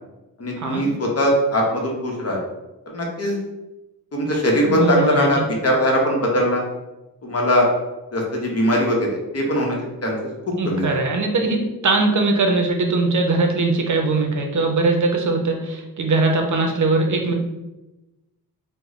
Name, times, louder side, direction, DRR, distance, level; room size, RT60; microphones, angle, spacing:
voice 1, 0.4-2.4 2.9-3.4 4.1-6.6 7.2-7.7 8.1-9.8 10.0-10.2 10.6-10.8, equal, 40° left, -1 dB, 0.9 m, -20 dB
voice 2, 4.7-5.4 10.6-17.3, right 3 dB, 55° right, 3 dB, 0.6 m, -20 dB
3.0 x 2.1 x 3.7 m, 1.0 s
wide cardioid pair, 95°, 37 cm